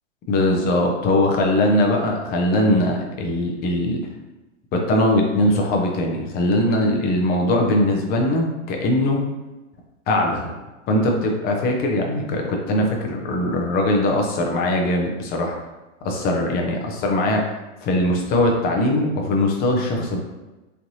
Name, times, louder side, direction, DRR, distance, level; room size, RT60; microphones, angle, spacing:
voice 1, 0.3-4.0 4.7-9.3 10.1-10.6 10.9-15.5 16.0-17.4 17.8-20.2, left 1 dB, 25° left, 1 dB, 0.5 m, -21 dB
3.2 x 2.6 x 2.6 m, 1.1 s
hypercardioid pair, 105°, 40 cm